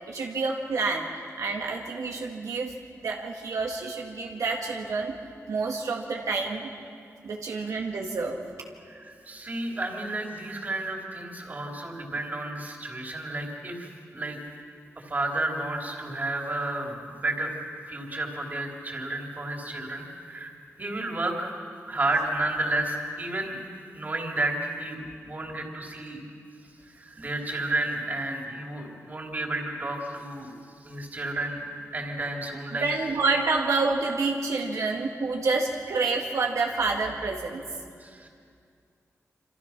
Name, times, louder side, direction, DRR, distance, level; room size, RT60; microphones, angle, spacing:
voice 1, 0.1-1.1 1.4-2.7 3.0-5.2 5.5-6.7 7.2-8.4 32.8-37.6, right 3 dB, 80° right, 0 dB, 1.9 m, -28 dB
voice 2, 8.9-14.4 15.0-17.5 17.9-20.5 20.8-21.6 21.9-23.6 23.9-26.2 26.9-30.5 30.8-31.6 31.9-32.9 38.0-38.3, right 2 dB, 30° right, 0 dB, 3.5 m, -31 dB
27.5 x 26.5 x 6.0 m, 2.3 s
wide cardioid pair, 140°, 5 cm